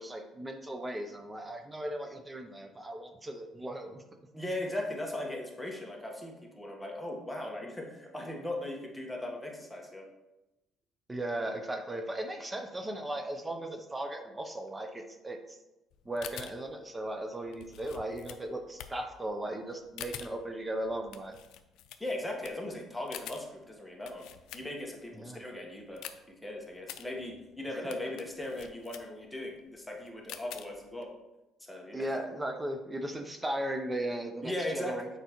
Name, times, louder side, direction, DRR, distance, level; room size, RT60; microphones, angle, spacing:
voice 1, 0.0-4.0 11.1-15.6 16.1-21.4 25.2-25.4 27.7-27.8 31.9-35.1, right 1 dB, 15° right, 5 dB, 0.6 m, -37 dB
voice 2, 4.3-10.1 22.0-24.2 24.5-31.1 31.6-32.1 34.4-35.0, left 1 dB, 5° left, -1 dB, 1.2 m, -38 dB
sound 1, 15.9-25.1 25.4-31.0, left 10 dB, 80° left, 0.4 m, -48 dB
6.8 x 4.7 x 3.0 m, 0.98 s
cardioid pair, 105°, 0 cm